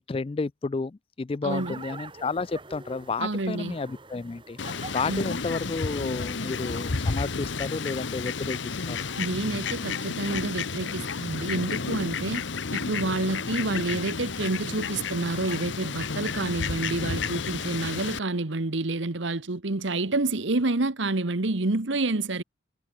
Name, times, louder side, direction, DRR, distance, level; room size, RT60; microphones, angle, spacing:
voice 1, 0.0-4.6 4.9-9.1 13.4-13.6, left 4 dB, 30° left, 0.3 m, -31 dB
voice 2, 1.4-1.7 3.2-3.8 5.1-5.2 9.2-12.4 12.7-22.4, right 2 dB, 70° right, 1.3 m, -28 dB
sound 1, 1.5-8.5, right 3 dB, 25° right, 1.6 m, -47 dB
Fowl, 4.6-18.2, left 4 dB, 70° left, 1.0 m, -31 dB
head